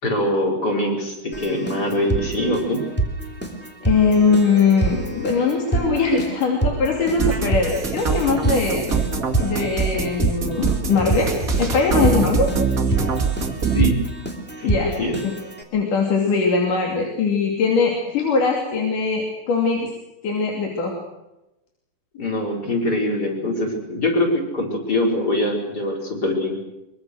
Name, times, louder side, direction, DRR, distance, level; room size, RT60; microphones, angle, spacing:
voice 1, 0.0-2.8 13.7-14.0 14.6-15.2 22.1-26.6, left 1 dB, 20° left, 0 dB, 5.4 m, -23 dB
Keyboard (musical), 1.3-15.6, right 2 dB, 5° left, 2.6 m, -27 dB
voice 2, 3.8-8.9 9.4-11.3 11.6-12.5 14.6-15.0 15.2-15.3 15.7-19.9 20.2-21.0, left 4 dB, 50° left, 0 dB, 4.1 m, -21 dB
sound 1, 7.2-13.9, right 5 dB, 35° right, 1.5 m, -23 dB
24.0 x 23.5 x 6.5 m, 0.96 s
omnidirectional pair, 4.9 m